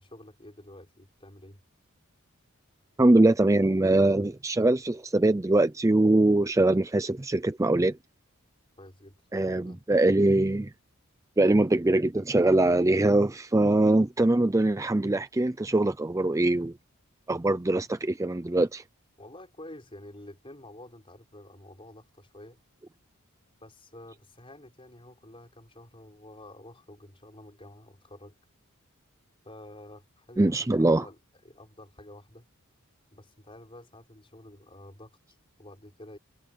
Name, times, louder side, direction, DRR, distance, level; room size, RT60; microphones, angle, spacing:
voice 1, 0.0-1.6 8.8-9.8 17.5-17.6 19.2-22.6 23.6-28.3 29.4-32.5 33.1-36.2, left 1 dB, 25° left, 4.9 m, -49 dB
voice 2, 3.0-7.9 9.3-10.7 11.4-16.7 17.3-18.8 30.4-31.0, right 2 dB, 15° right, 0.4 m, -22 dB
head